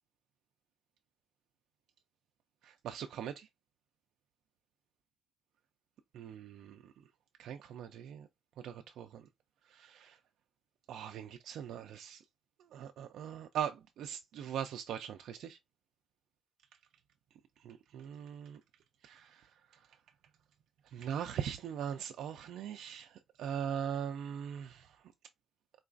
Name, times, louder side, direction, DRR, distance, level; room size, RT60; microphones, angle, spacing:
voice 1, 2.6-3.5 6.1-6.9 7.4-8.3 8.6-9.3 9.7-10.2 10.9-12.2 12.7-15.6 17.6-18.6 19.0-19.8 20.9-25.0, right 8 dB, 75° right, 0.3 m, -41 dB
3.8 x 2.4 x 2.4 m
cardioid pair, 90°, 0 cm